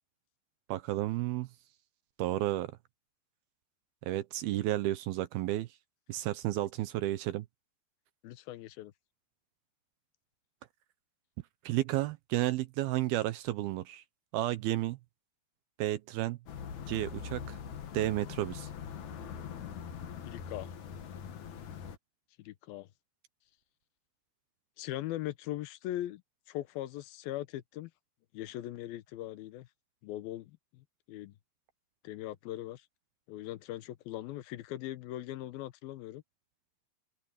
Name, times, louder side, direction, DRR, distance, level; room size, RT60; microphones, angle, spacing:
voice 1, 0.7-1.5 2.2-2.7 4.0-5.7 6.1-7.5 11.6-14.0 14.3-15.0 15.8-16.4 16.9-17.6 17.9-18.7, right 15 dB, 75° right, 2.6 m, -32 dB
voice 2, 8.2-8.9 20.3-20.7 22.4-22.9 24.8-26.2 26.5-27.9 28.3-29.7 30.0-31.4 32.0-32.9 33.3-36.2, left 14 dB, 75° left, 2.6 m, -40 dB
sound 1, 16.5-22.0, left 7 dB, 55° left, 2.7 m, -42 dB
omnidirectional pair, 4.7 m